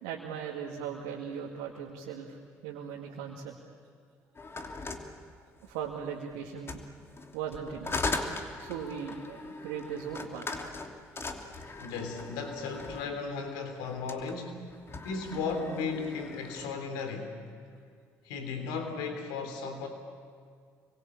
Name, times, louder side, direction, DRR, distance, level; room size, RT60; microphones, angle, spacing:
voice 1, 0.0-2.4 2.6-3.5 5.6-6.8 7.3-7.9 8.6-10.5, right 7 dB, 80° right, -1 dB, 2.3 m, -38 dB
sound 1, 4.3-5.9 6.6-13.2 13.9-14.4 14.7-16.7, left 3 dB, 35° left, 2.9 m, -39 dB
voice 2, 11.8-14.6 15.0-17.4 18.2-19.9, left 4 dB, 75° left, 6 dB, 3.5 m, -35 dB
27.0 x 24.0 x 8.6 m, 2.1 s
hypercardioid pair, 55°, 7 cm